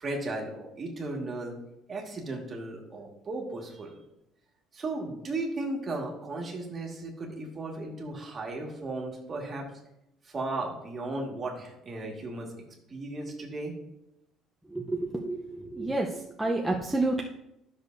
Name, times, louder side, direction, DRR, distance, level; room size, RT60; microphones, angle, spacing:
voice 1, 0.0-1.6 1.9-4.0 4.7-9.7 10.2-12.5 12.9-13.7, right 2 dB, 25° right, -1 dB, 1.7 m, -35 dB
voice 2, 14.7-15.4 15.7-16.1 16.4-17.2, right 2 dB, 5° right, -1 dB, 0.6 m, -28 dB
12.5 x 6.5 x 2.6 m, 0.84 s
cardioid pair, 150°, 0 cm